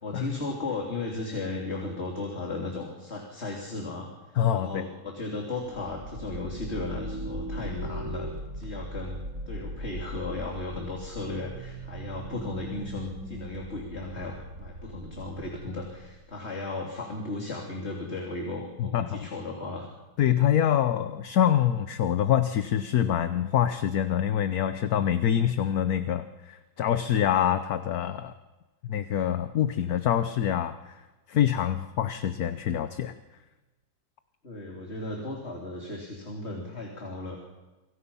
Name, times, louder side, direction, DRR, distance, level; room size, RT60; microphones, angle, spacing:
voice 1, 0.0-4.1 4.5-19.9 34.4-37.4, left 2 dB, 35° left, 0 dB, 3.6 m, -35 dB
voice 2, 4.4-4.9 18.8-19.2 20.2-28.3 28.9-30.9 31.3-33.1, left 10 dB, 60° left, 10 dB, 1.3 m, -25 dB
sound 1, 5.7-16.2, right 1 dB, 40° right, 4.6 m, -39 dB
29.0 x 24.5 x 5.6 m, 1.1 s
omnidirectional pair, 2.1 m